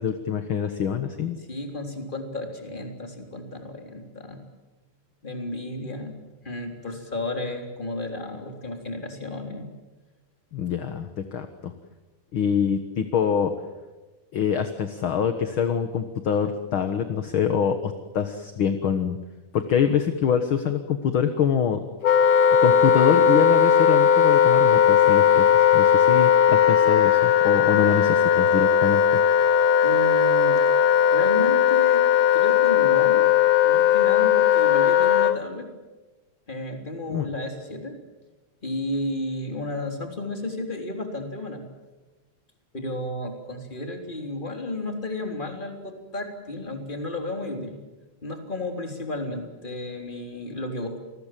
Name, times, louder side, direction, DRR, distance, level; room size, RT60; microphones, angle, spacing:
voice 1, 0.0-1.4 10.5-11.7 12.3-13.5 14.3-19.2 19.5-21.8 22.6-29.0 37.1-37.3, left 7 dB, 50° left, 8 dB, 1.8 m, -25 dB
voice 2, 1.5-4.4 5.2-6.2 6.4-9.7 29.8-30.8 31.1-32.1 32.3-33.3 33.6-35.7 36.5-38.0 38.6-41.7 42.7-47.8 48.2-51.0, left 2 dB, 15° left, 4 dB, 3.5 m, -33 dB
Wind instrument woodwind instrument, 22.0-35.4, left 8 dB, 85° left, 1.0 m, -18 dB
29.0 x 20.5 x 7.6 m, 1.2 s
omnidirectional pair, 3.6 m